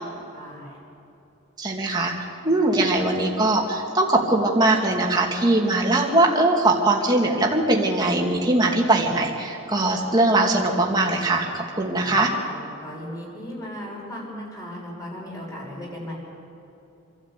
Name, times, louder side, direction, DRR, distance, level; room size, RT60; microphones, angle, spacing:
voice 1, 0.3-0.8 2.6-2.8 12.0-16.1, equal, 15° left, -4 dB, 6.3 m, -37 dB
voice 2, 1.6-2.1 2.4-12.3, right 2 dB, 20° right, -1 dB, 2.4 m, -21 dB
26.5 x 12.5 x 8.4 m, 2.8 s
head